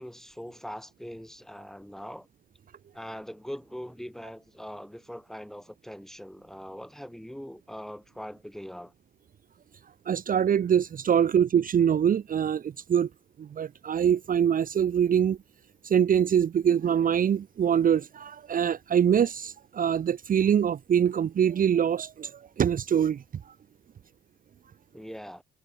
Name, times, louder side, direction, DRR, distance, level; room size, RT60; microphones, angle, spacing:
voice 1, 0.0-2.3 2.9-8.9 24.9-25.4, equal, ahead, 3.2 m, -41 dB
voice 2, 10.1-13.1 13.4-15.4 15.8-22.3 22.6-23.2, right 8 dB, 45° right, 0.7 m, -24 dB
cardioid pair, 90°, 20 cm